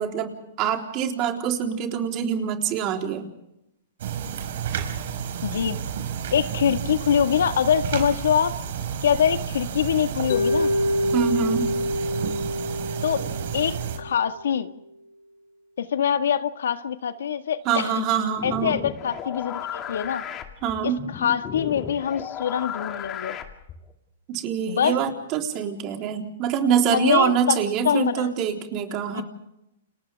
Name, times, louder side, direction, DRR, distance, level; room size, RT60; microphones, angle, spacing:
voice 1, 0.0-3.3 11.1-11.7 17.7-18.8 20.6-21.0 24.3-29.2, right 8 dB, 35° right, 3 dB, 3.7 m, -25 dB
sound 1, 4.0-14.0, right 8 dB, 65° right, 4.7 m, -31 dB
voice 2, 5.4-5.8 6.3-8.6 9.0-10.7 13.0-13.2 13.5-14.7 15.8-18.0 18.4-20.2 20.8-23.4 24.7-25.0 26.9-27.6 27.8-28.3 29.1-29.2, left 8 dB, 80° left, 8 dB, 1.7 m, -24 dB
Mallet percussion, 10.3-14.4, left 1 dB, 60° left, 2.8 m, -26 dB
sound 2, 18.3-23.9, left 9 dB, 25° left, 2.4 m, -35 dB
30.0 x 28.5 x 3.6 m, 0.84 s
hypercardioid pair, 145°, 0 cm